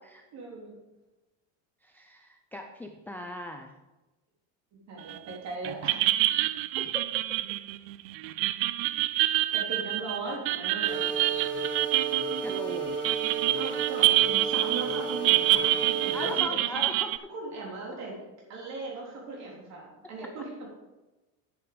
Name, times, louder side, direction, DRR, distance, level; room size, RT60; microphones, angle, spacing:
voice 1, 0.3-0.8 4.9-6.0 9.2-11.0 13.6-16.9 17.3-18.2 18.5-20.7, right 3 dB, 45° right, -2 dB, 3.7 m, -39 dB
voice 2, 1.8-3.7 6.8-7.2 12.4-12.9 16.1-17.1, left 1 dB, 5° left, 3 dB, 0.4 m, -39 dB
sound 1, 5.1-5.4 5.6-17.2, right 16 dB, 65° right, 0.5 m, -27 dB
sound 2, 10.8-16.4, right 5 dB, 25° right, 4.1 m, -32 dB
9.4 x 7.9 x 5.2 m, 1.1 s
cardioid pair, 150°, 38 cm